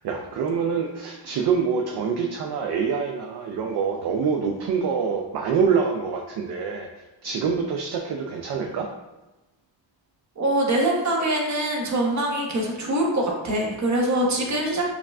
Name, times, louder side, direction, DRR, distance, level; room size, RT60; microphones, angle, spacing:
voice 1, 0.0-6.9 7.2-8.9, right 6 dB, 60° right, 2 dB, 0.5 m, -25 dB
voice 2, 10.4-14.9, right 1 dB, 35° right, -1 dB, 1.0 m, -24 dB
5.5 x 2.4 x 2.3 m, 1.0 s
cardioid pair, 90°, 46 cm